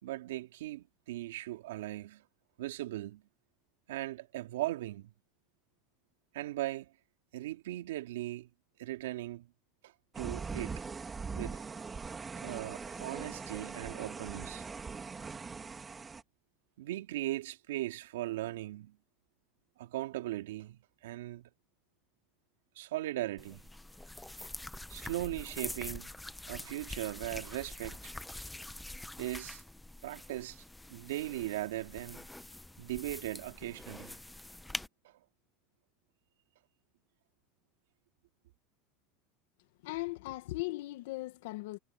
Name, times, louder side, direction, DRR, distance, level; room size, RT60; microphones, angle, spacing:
voice 1, 0.0-2.2 2.6-3.2 3.9-5.1 6.3-6.9 7.3-8.5 8.8-9.5 9.8-10.8 11.3-11.7 12.4-14.6 16.8-19.0 19.8-21.5 22.8-23.6 24.9-26.1 26.5-28.1 29.2-29.6 30.0-30.6 30.9-32.3 32.8-34.2 35.0-35.2, right 16 dB, 85° right, 2.7 m, -38 dB
sound 1, 10.1-16.2, right 5 dB, 20° right, 3.4 m, -41 dB
sound 2, 23.4-34.9, left 1 dB, 5° left, 1.1 m, -45 dB
voice 2, 39.8-41.8, left 20 dB, 75° left, 1.9 m, -38 dB
supercardioid pair, 110°, 0 cm